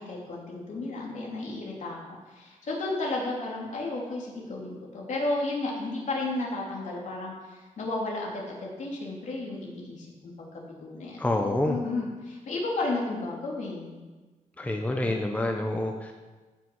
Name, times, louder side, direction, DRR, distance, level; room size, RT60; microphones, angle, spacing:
voice 1, 0.0-14.0 15.0-15.3, left 2 dB, 65° left, -3 dB, 3.1 m, -33 dB
voice 2, 11.2-11.8 14.6-16.1, left 1 dB, 10° left, 3 dB, 0.8 m, -27 dB
15.0 x 6.2 x 5.5 m, 1.3 s
wide cardioid pair, 150°, 13 cm